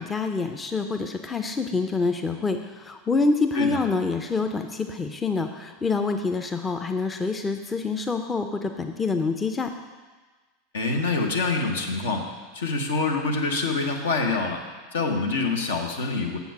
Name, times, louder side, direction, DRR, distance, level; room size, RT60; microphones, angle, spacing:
voice 1, 0.0-9.7, left 4 dB, 20° left, 6 dB, 0.6 m, -26 dB
voice 2, 10.7-12.3 12.5-14.6 14.9-16.4, left 3 dB, 70° left, 3 dB, 1.1 m, -26 dB
8.1 x 6.9 x 4.7 m, 1.3 s
figure-of-eight pair, 85°, 0 cm